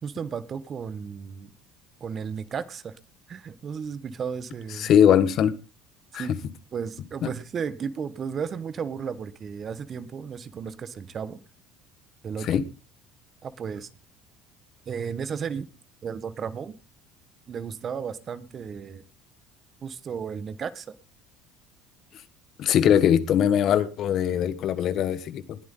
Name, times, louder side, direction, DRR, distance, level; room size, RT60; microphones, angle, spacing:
voice 1, 0.0-1.5 2.0-3.0 3.3-4.9 6.1-6.3 6.7-11.4 12.2-12.6 13.4-13.9 14.8-15.7 16.0-16.7 17.5-19.0 19.8-20.9, right 6 dB, 40° right, 14 dB, 1.5 m, -34 dB
voice 2, 4.8-5.5 6.1-6.3 7.2-7.3 12.4-12.6 22.6-25.6, left 9 dB, 55° left, 14 dB, 1.5 m, -21 dB
20.0 x 9.6 x 3.9 m, 0.33 s
supercardioid pair, 105°, 0 cm